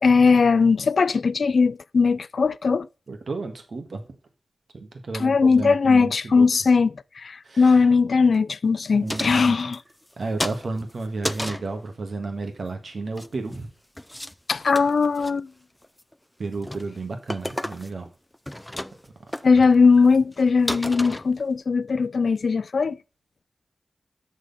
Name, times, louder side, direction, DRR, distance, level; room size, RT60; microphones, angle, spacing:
voice 1, 0.0-2.9 5.2-6.9 7.2-9.8 14.5-15.5 19.4-23.0, left 4 dB, 70° left, 0.4 m, -19 dB
voice 2, 3.1-4.0 4.7-6.5 7.4-7.9 8.9-9.6 10.2-13.7 16.4-18.1, right 3 dB, 65° right, 1.6 m, -32 dB
sound 1, 9.1-10.1 10.4-11.7 13.0-13.6 14.0-14.3 14.6-15.3 15.8-16.1 16.5-16.9 17.3-18.1 18.3-19.1 19.3-19.4 20.0-20.1 20.3-20.4 20.7-21.6, left 1 dB, 10° left, 0.4 m, -32 dB
6.6 x 6.4 x 5.4 m
wide cardioid pair, 70°, 0 cm